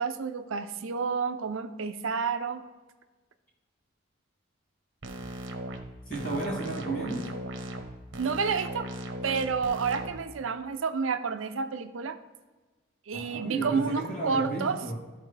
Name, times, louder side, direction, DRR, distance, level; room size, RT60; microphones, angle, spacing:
voice 1, 0.0-2.6 8.2-8.9 9.2-12.2 13.1-14.8, right 5 dB, 90° right, 9 dB, 0.5 m, -30 dB
sound 1, 5.0-5.8 6.1-7.8 8.1-10.1, right 1 dB, 70° right, 1.0 m, -38 dB
voice 2, 6.1-7.3 13.1-14.9, right 2 dB, 45° left, -5 dB, 2.7 m, -33 dB
13.0 x 4.4 x 3.3 m, 1.3 s
head